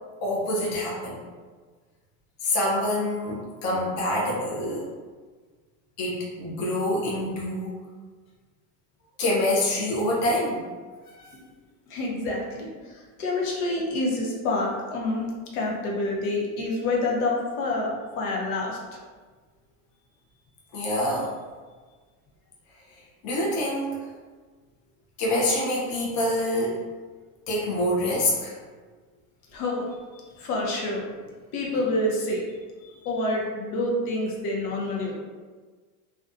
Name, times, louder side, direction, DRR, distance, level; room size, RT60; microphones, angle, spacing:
voice 1, 0.2-1.2 2.4-4.9 6.0-7.8 9.2-10.6 20.7-21.3 23.2-24.0 25.2-26.8 27.5-28.6 32.8-32.9, left 1 dB, 40° left, -4 dB, 0.6 m, -26 dB
voice 2, 11.9-19.0 29.5-29.8 30.4-31.1 31.5-32.4 33.0-35.1, left 2 dB, 85° left, -2 dB, 0.8 m, -28 dB
2.5 x 2.2 x 2.5 m, 1.4 s
cardioid pair, 155°, 43 cm